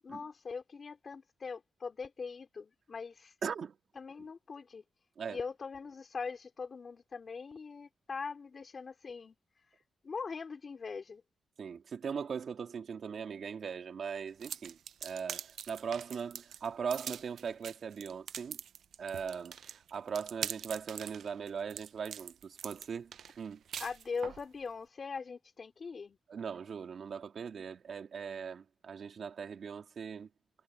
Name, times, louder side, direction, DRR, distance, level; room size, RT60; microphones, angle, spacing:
voice 1, 0.0-3.3 4.0-4.8 5.3-9.4 10.0-11.2 23.8-26.2, left 5 dB, 45° left, 3.7 m, -41 dB
voice 2, 3.4-3.7 5.2-5.4 11.6-18.6 19.0-23.6 26.3-30.3, right 6 dB, 60° right, 2.4 m, -40 dB
sound 1, 14.4-24.4, right 9 dB, 80° right, 0.8 m, -43 dB
cardioid pair, 95°, 0 cm